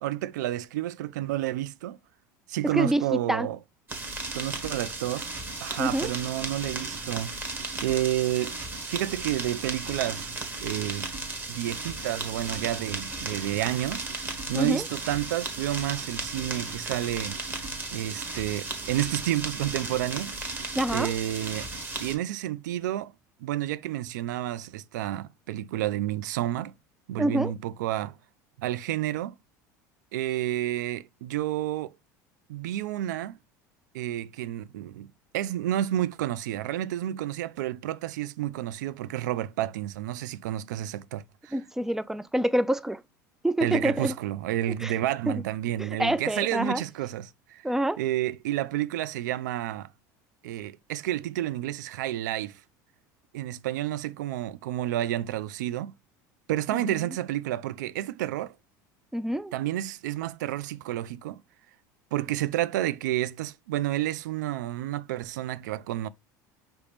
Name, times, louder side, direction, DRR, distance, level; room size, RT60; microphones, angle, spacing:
voice 1, 0.0-2.0 2.5-3.6 4.3-5.3 5.6-7.4 7.8-8.6 8.9-11.1 11.5-14.1 14.5-17.4 17.9-20.4 20.9-21.7 22.0-23.1 23.4-26.7 27.1-28.1 28.6-29.3 30.1-31.9 32.5-33.4 33.9-35.1 35.3-41.5 43.6-47.6 48.0-49.9 50.4-52.6 53.3-55.9 56.5-58.5 59.5-61.4 62.1-66.1, right 13 dB, 80° right, 0.4 m, -30 dB
voice 2, 2.6-3.5 5.8-6.1 14.5-14.9 20.8-21.1 27.2-27.5 41.5-43.0 43.4-44.2 44.8-44.9 45.3-45.4 45.8-46.8 47.6-48.0 56.7-57.1 59.1-59.5, right 1 dB, 5° right, 0.3 m, -27 dB
sound 1, 3.9-22.1, right 3 dB, 20° right, 1.4 m, -35 dB
5.1 x 2.9 x 3.3 m
hypercardioid pair, 85°, 10 cm